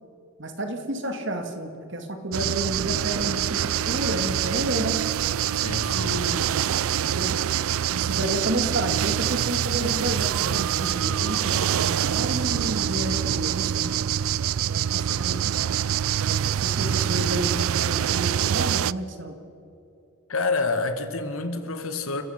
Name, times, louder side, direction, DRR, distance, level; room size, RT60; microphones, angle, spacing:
voice 1, 0.4-5.0 5.9-6.4 7.0-7.3 7.9-14.0 14.7-15.7 16.2-19.4, right 1 dB, 55° right, 2.3 m, -31 dB
sound 1, 2.3-18.9, right 10 dB, 70° right, 0.4 m, -25 dB
voice 2, 5.6-6.2 20.3-22.2, left 3 dB, 70° left, 1.9 m, -27 dB
29.5 x 15.0 x 5.9 m
head